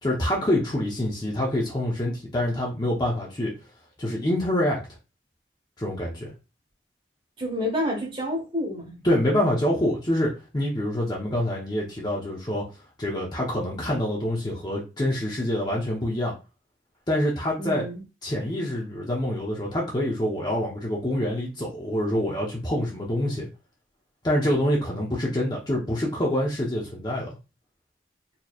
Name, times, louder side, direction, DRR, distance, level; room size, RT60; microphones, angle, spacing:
voice 1, 0.0-3.5 4.0-4.8 5.8-6.3 9.0-12.7 13.0-16.3 17.1-17.8 18.2-23.5 24.2-27.3, left 1 dB, 25° left, 0.8 m, -26 dB
voice 2, 7.4-9.0 17.6-18.0, left 1 dB, 30° right, 1.4 m, -29 dB
4.2 x 3.1 x 2.4 m
head